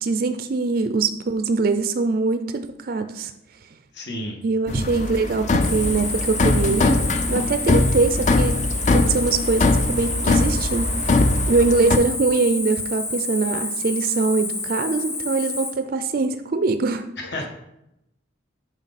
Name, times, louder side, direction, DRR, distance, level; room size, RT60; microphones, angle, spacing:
voice 1, 0.0-3.3 4.4-8.6 8.9-11.2 11.5-17.0, right 3 dB, 45° right, 8 dB, 0.4 m, -23 dB
voice 2, 3.9-4.4 17.2-17.5, left 1 dB, 60° left, 2 dB, 1.4 m, -30 dB
sound 1, 4.7-12.0, left 2 dB, 35° left, 0.4 m, -21 dB
Cricket, 5.6-15.7, left 2 dB, 15° left, 1.5 m, -29 dB
7.3 x 5.1 x 4.1 m, 0.84 s
head